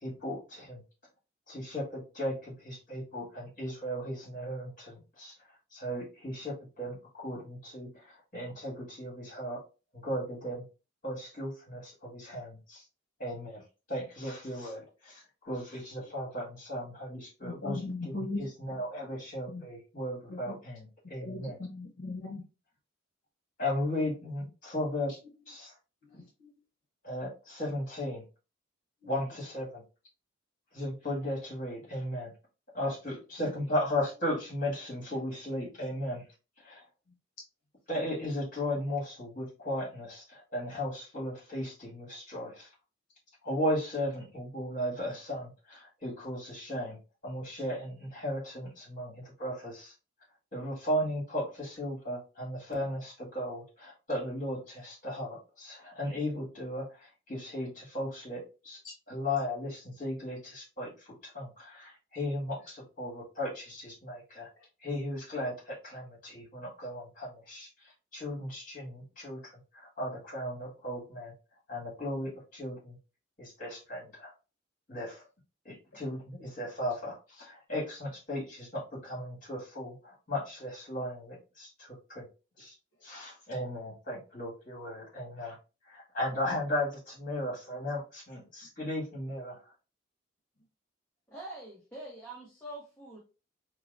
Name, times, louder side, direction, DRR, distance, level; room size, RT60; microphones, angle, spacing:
voice 1, 0.0-0.8 1.5-5.4 5.7-9.6 9.9-10.6 11.0-12.9 13.2-13.6 13.9-21.6 23.6-25.2 25.5-25.7 27.0-28.2 29.1-29.8 30.7-32.3 32.7-36.2 36.6-36.9 37.9-42.7 43.4-47.0 47.2-49.9 50.5-58.8 59.1-61.3 62.1-64.5 64.8-71.3 71.7-73.0 73.4-74.3 74.9-75.2 75.6-82.3 82.6-82.8 83.0-85.6 85.9-89.6, left 1 dB, 45° left, -3 dB, 1.9 m, -36 dB
voice 2, 17.4-18.4 19.5-19.7 20.3-20.5 21.2-22.4 26.1-26.5, left 2 dB, 70° left, 0 dB, 0.8 m, -38 dB
voice 3, 91.3-93.2, right 1 dB, 10° left, -5 dB, 0.8 m, -44 dB
4.5 x 2.1 x 2.5 m, 0.31 s
head